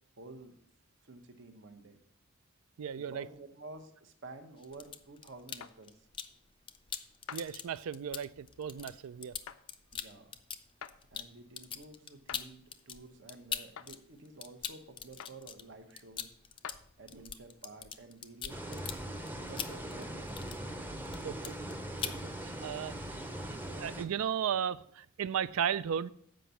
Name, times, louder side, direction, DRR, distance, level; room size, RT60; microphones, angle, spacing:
voice 1, 0.2-0.6 1.0-2.0 3.0-6.1 9.9-10.4 11.1-16.3 17.0-19.0 19.5-20.6, right 3 dB, 60° right, 1.0 m, -51 dB
voice 2, 2.8-3.3 7.3-9.4 17.1-17.2 21.2-21.5 22.0-22.1 22.4-23.0 23.5-26.1, right 8 dB, 80° right, 0.4 m, -35 dB
sound 1, 4.6-6.3 6.7-14.0 14.2-20.8 21.1-21.7 22.0-22.2, left 7 dB, 25° left, 0.4 m, -42 dB
sound 2, 5.6-5.8 7.3-7.5 9.5-9.6 10.8-11.0 12.3-12.5 13.8-13.9 15.2-15.4 16.6-16.8, left 8 dB, 90° left, 0.5 m, -45 dB
sound 3, 18.5-24.1, right 1 dB, 10° right, 0.7 m, -41 dB
7.5 x 5.2 x 6.8 m
head